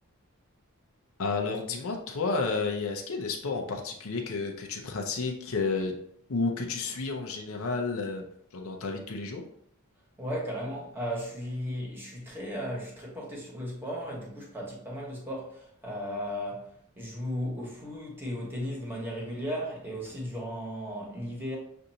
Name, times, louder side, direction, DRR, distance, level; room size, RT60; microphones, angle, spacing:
voice 1, 1.2-5.9 6.3-8.2 8.5-9.4, left 4 dB, 75° left, 0.7 m, -31 dB
voice 2, 10.2-16.7 17.0-21.6, equal, 10° right, 1.3 m, -35 dB
6.5 x 2.6 x 2.8 m
head